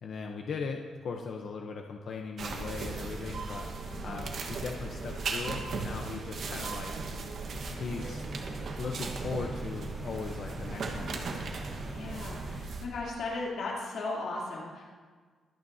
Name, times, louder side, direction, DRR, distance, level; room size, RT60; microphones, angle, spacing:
voice 1, 0.0-3.7 4.0-6.9 7.8-8.3 8.8-11.4, left 4 dB, 60° left, 2 dB, 0.8 m, -38 dB
sound 1, 2.4-12.9, right 4 dB, 60° right, 1.4 m, -37 dB
voice 2, 3.9-4.2 11.9-14.8, left 2 dB, 80° left, -5 dB, 3.1 m, -37 dB
sound 2, 7.4-12.6, equal, ahead, 0.7 m, -44 dB
23.5 x 9.3 x 2.8 m, 1.5 s
cardioid pair, 130°, 0 cm